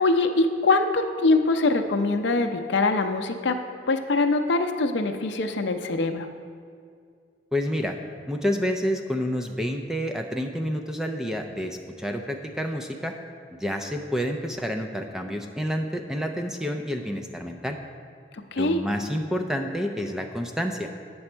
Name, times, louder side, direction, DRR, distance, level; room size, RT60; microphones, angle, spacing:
voice 1, 0.0-3.6 3.9-6.3 18.5-18.8, left 3 dB, 70° left, 6 dB, 0.6 m, -23 dB
voice 2, 7.5-8.0 8.3-13.1 13.5-17.8 18.6-20.9, equal, 5° right, 4 dB, 0.4 m, -29 dB
8.6 x 7.0 x 4.4 m, 2.2 s
head